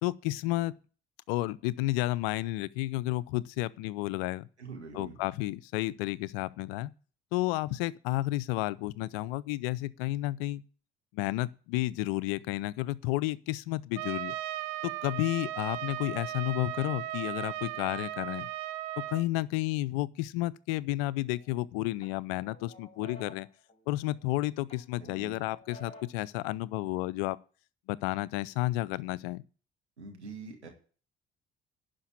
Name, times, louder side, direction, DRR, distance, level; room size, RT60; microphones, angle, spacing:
voice 1, 0.0-0.7 1.3-4.5 4.9-6.9 7.3-10.6 11.1-14.3 14.8-18.5 19.0-23.5 23.9-27.4 27.9-29.4, left 17 dB, 65° left, 0.6 m, -31 dB
voice 2, 4.6-5.2 25.0-25.4 30.0-30.7, right 4 dB, 85° right, 1.9 m, -44 dB
Trumpet, 13.9-19.2, right 15 dB, 70° right, 0.7 m, -37 dB
sound 1, 21.4-21.6 22.0-24.3 24.7-26.3, left 1 dB, 20° left, 3.6 m, -52 dB
11.5 x 5.2 x 8.4 m
figure-of-eight pair, 50°, 33 cm